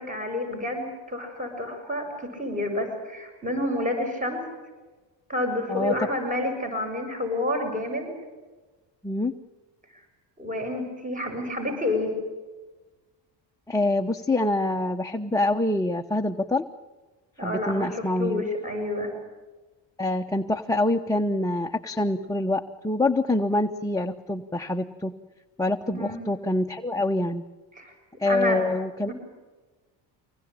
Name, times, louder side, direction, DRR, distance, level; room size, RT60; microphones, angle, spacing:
voice 1, 0.0-4.4 5.3-8.1 9.9-10.0 10.4-12.1 17.4-19.1 25.9-26.2 27.7-27.9 28.3-28.6 29.1-29.2, left 1 dB, 15° right, 3 dB, 6.9 m, -29 dB
voice 2, 13.7-16.6 17.4-18.5 20.0-25.1 25.6-27.4 28.2-29.1, left 2 dB, 5° left, 2 dB, 1.0 m, -25 dB
24.5 x 19.5 x 9.0 m, 1.3 s
supercardioid pair, 85°, 48 cm